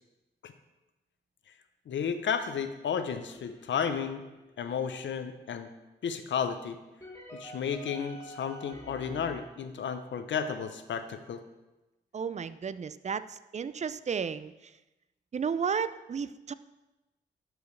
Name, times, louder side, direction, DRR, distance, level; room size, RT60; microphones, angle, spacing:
voice 1, 1.9-4.2 4.6-5.7 6.0-6.8 7.4-11.4, left 7 dB, 80° left, 9 dB, 0.6 m, -33 dB
sound 1, 3.3-4.9 7.0-9.4, right 1 dB, 15° left, 2.3 m, -48 dB
voice 2, 12.1-14.8 15.3-16.5, right 6 dB, 40° right, 15 dB, 0.4 m, -33 dB
12.0 x 4.7 x 3.2 m, 1.0 s
cardioid pair, 50°, 19 cm